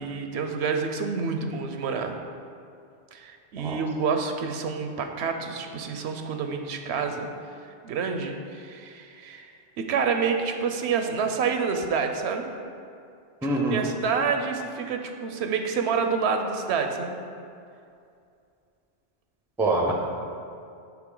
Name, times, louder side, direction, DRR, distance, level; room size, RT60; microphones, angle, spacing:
voice 1, 0.0-2.2 3.1-7.3 7.8-9.5 9.8-12.5 13.4-17.2, right 5 dB, 75° right, 5 dB, 0.8 m, -28 dB
voice 2, 13.4-13.8 19.6-19.9, right 2 dB, 5° right, 0 dB, 0.4 m, -24 dB
9.3 x 3.6 x 3.8 m, 2.5 s
omnidirectional pair, 1.1 m